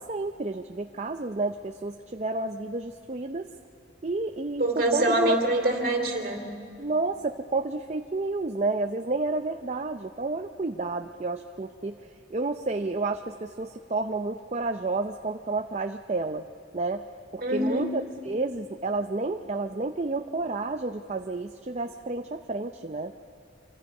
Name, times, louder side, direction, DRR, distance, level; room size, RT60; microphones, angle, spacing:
voice 1, 0.0-3.5 4.0-5.4 6.8-16.5 16.7-17.0 17.3-23.1, right 3 dB, 35° right, 6 dB, 0.6 m, -30 dB
voice 2, 4.6-6.5 17.4-17.9, right 1 dB, 50° right, 3 dB, 3.0 m, -25 dB
26.5 x 25.5 x 5.4 m, 2.2 s
head